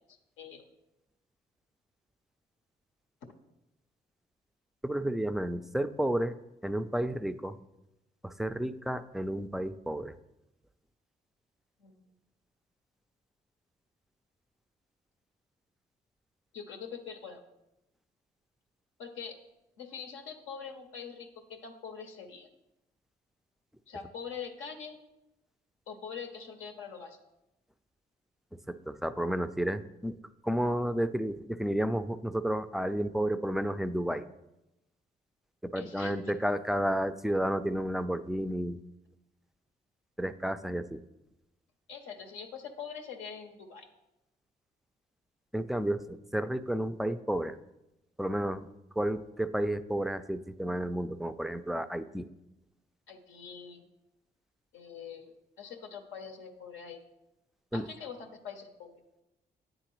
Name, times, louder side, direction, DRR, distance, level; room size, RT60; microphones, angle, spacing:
voice 1, 0.1-0.6 11.8-12.0 16.5-17.4 19.0-19.4 19.8-22.5 23.9-25.0 25.9-27.2 35.7-36.1 41.9-43.9 53.1-53.9 54.7-57.0 57.7-59.0, left 6 dB, 85° left, 3 dB, 0.6 m, -44 dB
voice 2, 4.8-6.3 6.6-7.6 8.2-10.1 28.7-30.2 30.4-34.2 35.6-38.8 40.2-41.0 45.5-47.6 48.2-48.7 49.0-52.3 57.7-57.9, right 1 dB, ahead, 12 dB, 0.3 m, -31 dB
8.9 x 3.9 x 3.0 m, 0.92 s
supercardioid pair, 55°, 20 cm